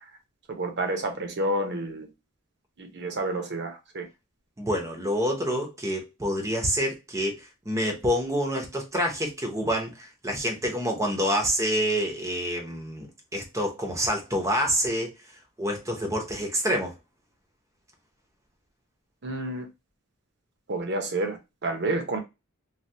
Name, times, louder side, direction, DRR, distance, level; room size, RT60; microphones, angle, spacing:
voice 1, 0.5-2.1 2.8-4.1 19.2-19.7 20.7-22.2, right 2 dB, 55° right, 0.8 m, -29 dB
voice 2, 4.6-13.1 13.3-15.1 15.6-16.9, equal, 15° right, 0.7 m, -27 dB
3.3 x 2.2 x 2.7 m
head